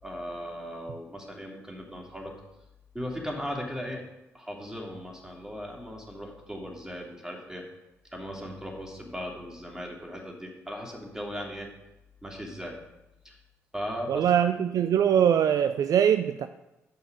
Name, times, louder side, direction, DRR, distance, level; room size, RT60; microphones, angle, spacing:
voice 1, 0.0-2.3 2.9-4.0 4.3-7.6 8.1-11.7 12.2-12.8 13.2-13.4 13.7-14.3, equal, 10° right, -1 dB, 2.6 m, -37 dB
voice 2, 14.1-16.5, right 9 dB, 55° right, 10 dB, 0.4 m, -22 dB
8.7 x 5.5 x 5.2 m, 0.95 s
hypercardioid pair, 45°, 7 cm